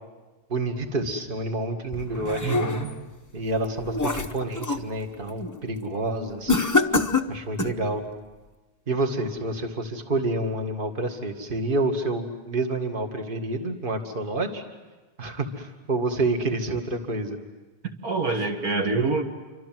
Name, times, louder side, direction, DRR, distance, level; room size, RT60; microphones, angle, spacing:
voice 1, 0.5-2.5 3.3-6.6 7.3-8.0 8.9-14.6 15.2-17.4, right 2 dB, 30° right, 5 dB, 2.1 m, -28 dB
sound 1, 1.9-3.1 3.5-4.9 5.3-5.6 6.5-7.8, left 3 dB, 20° left, 0.6 m, -26 dB
voice 2, 2.4-3.0 18.0-19.2, right 3 dB, 60° right, 3 dB, 2.2 m, -26 dB
28.5 x 25.0 x 7.7 m, 1.2 s
omnidirectional pair, 1.7 m